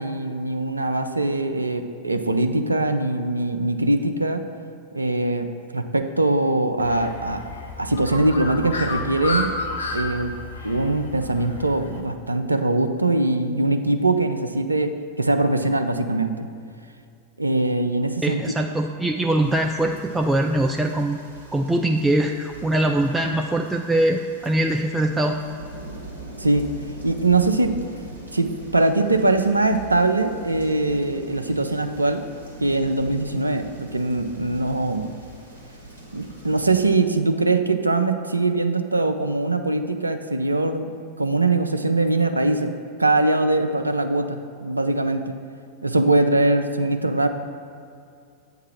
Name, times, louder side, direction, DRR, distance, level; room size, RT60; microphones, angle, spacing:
voice 1, 0.0-4.5 4.9-7.4 7.8-9.5 9.9-10.4 10.6-16.5 17.4-18.6 26.4-27.8 28.3-32.2 32.6-35.1 36.1-40.9 41.2-45.4 45.8-47.3, right 2 dB, 80° right, 7 dB, 0.4 m, -22 dB
Bird, 6.8-12.0, left 2 dB, 70° left, 0.7 m, -31 dB
voice 2, 18.2-21.2 21.5-25.4, right 1 dB, 5° right, 2 dB, 0.3 m, -22 dB
sound 1, 19.4-36.8, right 2 dB, 90° left, 1.1 m, -41 dB
8.4 x 2.8 x 6.1 m, 2.4 s
figure-of-eight pair, 90°, 0 cm